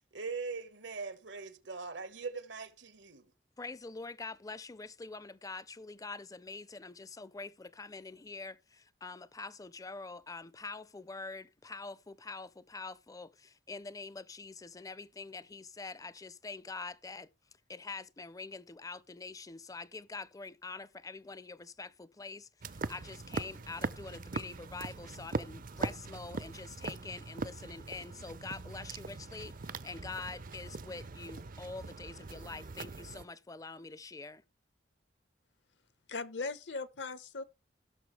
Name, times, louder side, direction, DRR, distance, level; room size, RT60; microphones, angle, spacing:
voice 1, 0.1-3.3, right 4 dB, 85° right, 1.6 m, -41 dB
voice 2, 3.6-17.3 17.7-34.4, left 3 dB, 20° left, 0.5 m, -45 dB
sound 1, 22.6-33.2, right 3 dB, 50° right, 0.6 m, -41 dB
voice 3, 36.1-37.4, left 3 dB, 75° left, 1.1 m, -38 dB
17.0 x 6.7 x 3.3 m
head